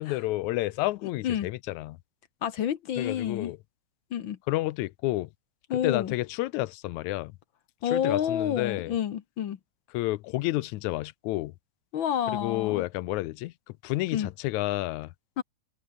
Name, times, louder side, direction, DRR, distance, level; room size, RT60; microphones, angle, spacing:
voice 1, 0.0-2.0 3.0-3.6 4.5-5.3 5.8-7.3 7.9-8.9 9.9-11.5 12.4-13.5 13.8-15.1, left 18 dB, 80° left, 2.0 m, -30 dB
voice 2, 1.0-1.5 2.4-3.5 4.1-4.4 5.7-6.1 7.8-9.6 11.9-12.8 14.1-14.3 15.4-15.5, left 9 dB, 60° left, 1.4 m, -29 dB
omnidirectional pair, 3.4 m